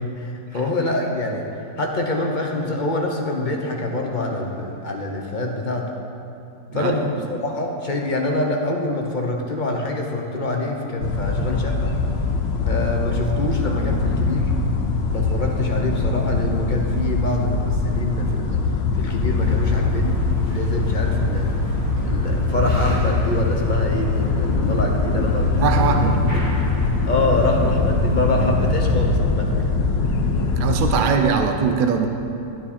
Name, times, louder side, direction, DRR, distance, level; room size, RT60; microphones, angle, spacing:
voice 1, 0.0-5.9 6.7-11.9 12.7-14.5 15.1-18.6 18.9-21.8 22.0-25.7 26.0-26.5 27.1-29.7 31.0-31.1, left 2 dB, 40° left, 1 dB, 0.7 m, -25 dB
voice 2, 6.7-7.1 25.5-26.3 30.6-32.1, right 6 dB, 55° right, 5 dB, 0.5 m, -21 dB
Skylarks and other sounds, 11.0-31.0, left 3 dB, 80° left, 1.6 m, -22 dB
sound 1, 19.3-29.2, right 1 dB, 90° right, 2.7 m, -32 dB
12.0 x 9.7 x 4.3 m, 2.8 s
omnidirectional pair, 1.9 m